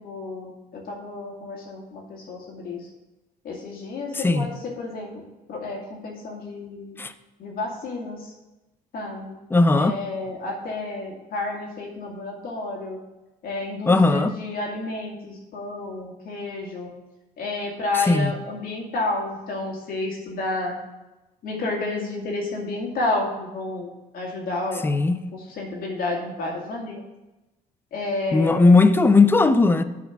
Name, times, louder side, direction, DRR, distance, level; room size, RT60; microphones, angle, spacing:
voice 1, 0.0-2.9 3.4-5.1 5.5-7.0 7.4-8.3 8.9-9.4 9.7-13.0 13.4-16.9 17.4-20.7 21.4-23.9 24.1-24.8 25.3-27.0 27.9-28.8, left 2 dB, 60° left, 2.2 m, -30 dB
voice 2, 4.1-4.5 7.0-7.1 9.5-10.0 13.9-14.3 17.9-18.3 24.8-25.2 28.3-29.8, left 3 dB, 15° left, 0.5 m, -17 dB
7.9 x 4.9 x 7.2 m
cardioid pair, 110°, 17 cm